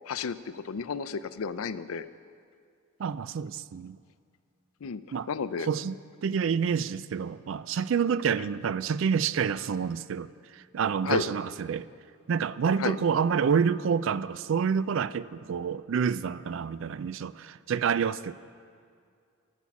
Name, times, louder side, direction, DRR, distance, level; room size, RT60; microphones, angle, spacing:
voice 1, 0.1-2.1 4.8-5.0 5.3-5.7 11.0-11.2 12.8-12.9, left 6 dB, 85° left, 0.5 m, -32 dB
voice 2, 3.0-4.0 5.1-5.3 5.6-11.9 12.3-18.3, right 6 dB, 65° right, 0.3 m, -28 dB
18.0 x 7.2 x 6.0 m
head